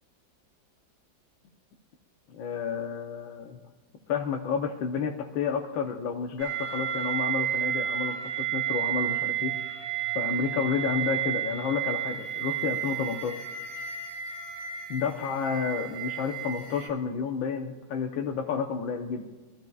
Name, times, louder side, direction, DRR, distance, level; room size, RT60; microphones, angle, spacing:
voice 1, 2.3-3.6 4.1-9.5 10.1-13.3 14.9-19.2, left 6 dB, 85° left, 1 dB, 1.6 m, -30 dB
sound 1, 6.4-16.9, right 11 dB, 80° right, 2.2 m, -32 dB
24.0 x 13.0 x 2.4 m, 1.3 s
omnidirectional pair, 2.1 m